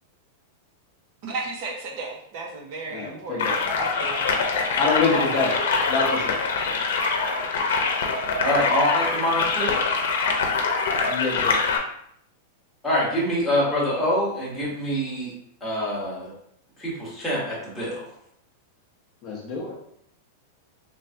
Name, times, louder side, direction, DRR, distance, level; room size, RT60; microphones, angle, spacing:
voice 1, 1.2-4.3 5.1-5.6, right 3 dB, 35° right, 0 dB, 0.5 m, -34 dB
voice 2, 2.9-3.6 4.8-5.6 5.9-6.4 11.1-11.6 19.2-19.7, left 4 dB, 25° left, -3 dB, 0.6 m, -26 dB
sound 1, 3.4-11.8, left 4 dB, 75° left, 0.6 m, -24 dB
voice 3, 8.4-9.8 12.8-15.3 15.6-16.3 16.8-18.0, left 1 dB, ahead, -8 dB, 1.0 m, -25 dB
3.3 x 3.2 x 2.6 m, 0.69 s
supercardioid pair, 180°, 0 cm